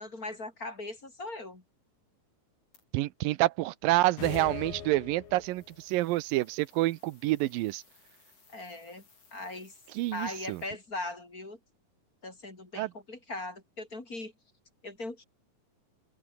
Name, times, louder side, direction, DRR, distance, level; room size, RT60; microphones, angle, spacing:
voice 1, 0.0-1.6 8.5-9.0 9.3-9.7 10.1-11.6 12.2-14.3 14.8-15.2, left 2 dB, 25° left, 3.9 m, -39 dB
sound 1, 2.7-2.9 5.3-10.7, left 4 dB, 45° left, 6.4 m, -62 dB
voice 2, 2.9-7.8 10.0-10.6 12.8-12.9, right 18 dB, 90° right, 2.5 m, -28 dB
sound 2, 4.2-5.7, left 7 dB, 85° left, 4.9 m, -40 dB
open air
omnidirectional pair, 3.9 m